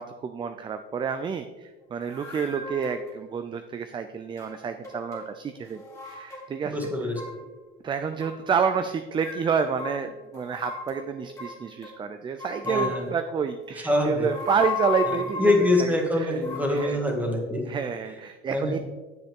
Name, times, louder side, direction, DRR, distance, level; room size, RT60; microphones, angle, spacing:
voice 1, 0.0-6.8 7.8-15.5 15.8-16.4 16.7-17.0 17.7-18.8, right 6 dB, 20° right, 9 dB, 0.4 m, -29 dB
sound 1, 2.1-3.1 4.3-5.2 5.5-6.5 6.8-7.5 8.2-8.7 9.2-11.9 12.4-13.2 14.1-15.8 16.4-16.9, left 5 dB, 15° left, 2.2 m, -35 dB
voice 2, 6.6-7.2 12.6-13.1 13.8-14.3 15.4-17.7 18.5-18.7, left 1 dB, 5° right, 1 dB, 1.8 m, -24 dB
9.4 x 7.1 x 3.6 m, 1.2 s
cardioid pair, 130°, 21 cm